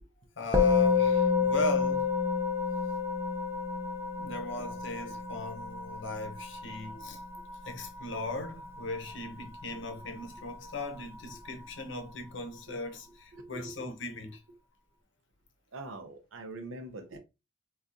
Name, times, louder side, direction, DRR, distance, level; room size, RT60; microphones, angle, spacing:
voice 1, 0.4-2.1 4.2-7.2 7.6-14.4, left 2 dB, 65° left, 0.7 m, -38 dB
Musical instrument, 0.5-10.1, left 5 dB, 10° right, 0.5 m, -30 dB
voice 2, 13.3-13.7 15.7-17.2, right 2 dB, 80° right, 0.7 m, -43 dB
3.9 x 2.3 x 2.5 m
head